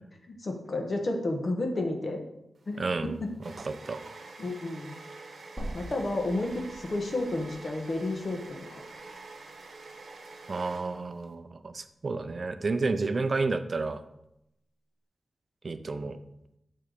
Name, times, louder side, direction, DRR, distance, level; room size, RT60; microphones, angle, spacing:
voice 1, 0.3-2.2 2.7-3.3 4.4-4.9 5.7-8.8, left 2 dB, 45° left, 3 dB, 1.2 m, -31 dB
sound 1, 2.6-11.3, right 3 dB, 70° right, 1.2 m, -47 dB
voice 2, 2.8-3.1 3.6-4.0 10.5-14.0 15.6-16.2, right 3 dB, 45° right, 10 dB, 0.5 m, -31 dB
sound 2, 5.6-9.7 10.1-10.2 11.6-11.7, right 1 dB, ahead, 2.2 m, -45 dB
8.7 x 3.3 x 6.6 m, 0.84 s
wide cardioid pair, 115°, 0 cm